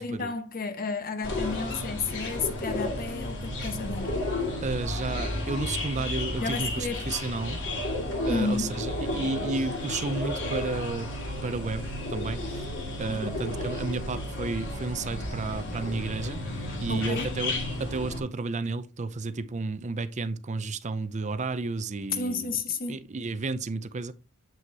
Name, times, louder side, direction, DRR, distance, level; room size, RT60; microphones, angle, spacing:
voice 1, 0.0-4.1 6.4-7.0 8.3-8.8 13.1-13.4 16.9-17.3 22.1-23.1, left 4 dB, 40° left, 0.9 m, -32 dB
sound 1, 1.2-18.2, left 1 dB, 60° left, 2.3 m, -32 dB
voice 2, 4.6-7.6 8.3-11.1 11.4-11.8 12.1-12.7 13.0-16.4 16.8-17.5 17.8-22.5 22.9-24.1, right 3 dB, 35° right, 0.5 m, -32 dB
7.7 x 6.0 x 2.8 m
head